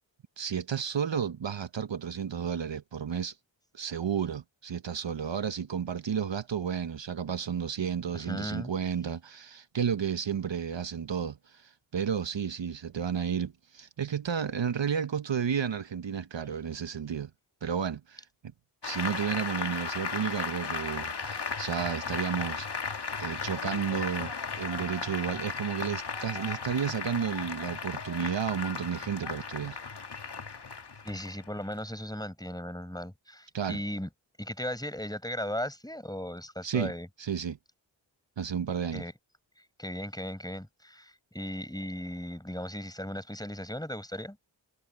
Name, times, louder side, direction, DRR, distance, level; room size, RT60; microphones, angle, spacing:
voice 1, 0.4-3.4 3.7-17.3 17.6-18.3 18.8-22.7 23.2-29.8 33.5-33.8 36.6-36.9 37.2-37.6 38.4-39.0, right 7 dB, 70° right, 1.0 m, -32 dB
voice 2, 8.1-8.7 31.0-34.1 34.4-37.1 38.9-39.1 39.8-44.4, left 1 dB, 10° left, 5.5 m, -37 dB
Applause, 18.8-31.8, left 5 dB, 55° left, 1.7 m, -36 dB
wide cardioid pair, 55°, 47 cm